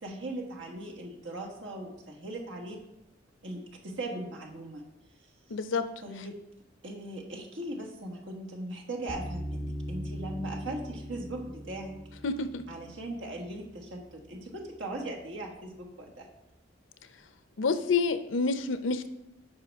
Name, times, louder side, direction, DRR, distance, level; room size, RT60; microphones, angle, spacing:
voice 1, 0.0-2.8 3.4-4.8 6.0-6.4 6.8-11.9 12.7-16.3, right 1 dB, 75° right, 0 dB, 1.5 m, -39 dB
voice 2, 5.5-5.8 12.2-12.6 17.6-19.1, left 4 dB, 90° left, 11 dB, 0.6 m, -28 dB
sound 1, 9.1-14.2, equal, ahead, 1.8 m, -40 dB
9.5 x 5.7 x 3.5 m, 0.90 s
head